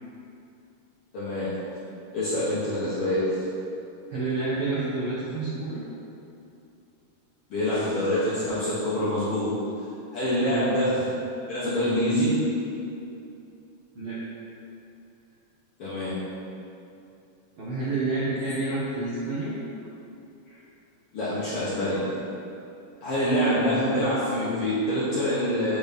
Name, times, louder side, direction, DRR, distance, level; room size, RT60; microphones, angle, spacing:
voice 1, 1.1-1.6 2.1-3.4 7.5-9.6 10.1-11.1 11.5-12.4 15.8-16.2 20.5-20.6 21.1-22.2 23.0-25.8, equal, 65° left, -10 dB, 1.4 m, -25 dB
voice 2, 4.1-5.8 13.9-14.2 17.6-19.5, right 3 dB, 75° right, -9 dB, 1.1 m, -29 dB
8.4 x 4.0 x 3.5 m, 2.7 s
omnidirectional pair, 3.9 m